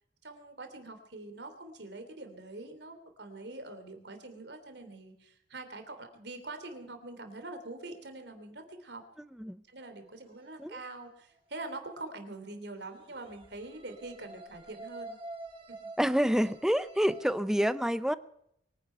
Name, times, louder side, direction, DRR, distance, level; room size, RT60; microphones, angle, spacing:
voice 1, 0.2-9.0 9.7-15.2 15.7-15.9, right 2 dB, 65° right, 3.2 m, -44 dB
sound 1, 9.8-10.5 12.8-17.3, right 2 dB, 30° right, 3.4 m, -47 dB
voice 2, 16.0-18.1, equal, 5° right, 0.7 m, -27 dB
23.5 x 10.5 x 5.6 m
head